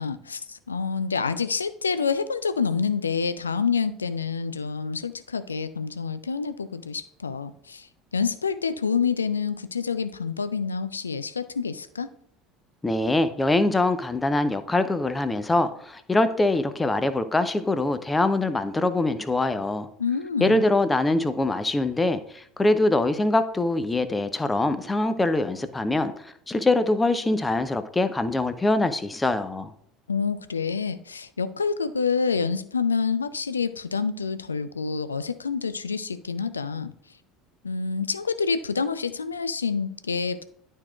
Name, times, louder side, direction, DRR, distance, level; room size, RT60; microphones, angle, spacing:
voice 1, 0.0-7.9 8.1-12.1 20.0-20.6 30.1-36.9 37.6-40.4, left 5 dB, 80° left, 13 dB, 0.4 m, -27 dB
voice 2, 12.8-19.9 20.4-29.7, left 2 dB, 15° left, 11 dB, 0.7 m, -23 dB
11.5 x 4.6 x 2.4 m, 0.68 s
figure-of-eight pair, 65°, 0 cm